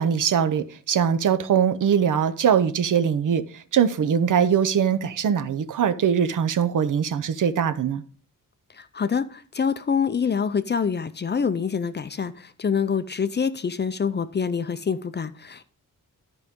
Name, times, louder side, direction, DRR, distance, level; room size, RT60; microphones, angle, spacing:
voice 1, 0.0-8.0, right 7 dB, 65° right, 0.7 m, -22 dB
voice 2, 8.7-15.6, left 6 dB, 30° left, 0.4 m, -26 dB
13.0 x 5.3 x 3.6 m
wide cardioid pair, 180°, 33 cm